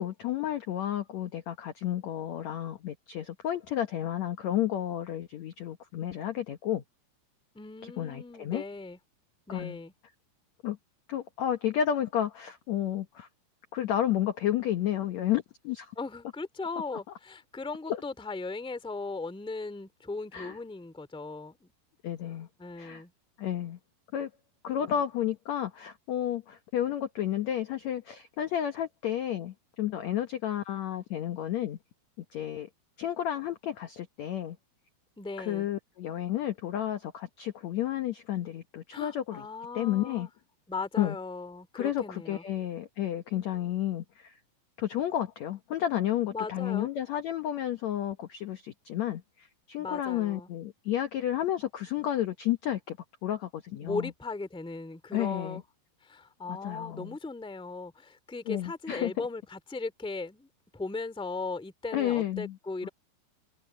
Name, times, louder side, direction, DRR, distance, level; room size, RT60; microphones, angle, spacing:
voice 1, 0.0-6.8 7.8-8.6 9.5-9.8 10.6-10.8 11.1-13.3 13.7-15.9 20.3-20.6 22.0-22.5 22.8-23.0 23.4-23.8 24.1-24.3 24.6-31.8 32.3-32.7 33.0-34.6 35.4-39.5 39.7-40.3 41.0-41.1 41.7-44.3 44.8-53.0 53.2-54.1 55.1-55.6 56.5-57.2 58.5-59.3 61.9-62.6 62.8-62.9, left 11 dB, 70° left, 1.7 m, -31 dB
voice 2, 7.5-9.0 9.5-9.9 15.9-21.7 22.6-23.1 24.8-25.0 35.2-35.7 38.9-40.3 40.7-42.4 46.3-46.9 49.8-50.5 53.8-55.6 56.0-62.9, left 3 dB, ahead, 1.5 m, -38 dB
omnidirectional pair, 4.7 m